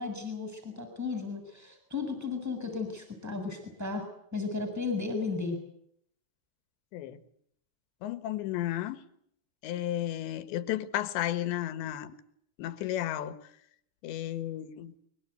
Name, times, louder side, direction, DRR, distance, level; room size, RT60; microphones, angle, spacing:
voice 1, 0.0-4.0 4.3-5.6, left 4 dB, 5° right, 5 dB, 6.8 m, -34 dB
voice 2, 8.0-9.0 9.6-12.1 12.6-13.4 14.0-14.9, left 12 dB, 85° left, 12 dB, 3.7 m, -33 dB
24.0 x 23.0 x 8.1 m, 0.70 s
omnidirectional pair, 5.0 m